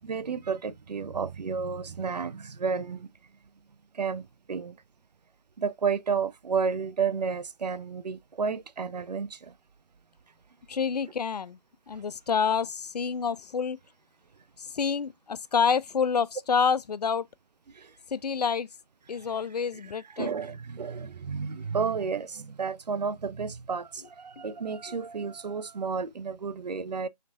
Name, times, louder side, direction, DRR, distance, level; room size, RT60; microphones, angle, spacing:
voice 1, 0.0-3.1 3.9-4.8 5.6-9.5 17.7-18.0 19.1-19.3 19.8-27.1, right 5 dB, 80° right, 0.5 m, -32 dB
voice 2, 10.7-11.6 11.9-13.8 14.6-17.3 18.1-18.7 19.1-20.3, left 6 dB, 70° left, 0.5 m, -28 dB
4.3 x 3.9 x 2.4 m
figure-of-eight pair, 155°, 21 cm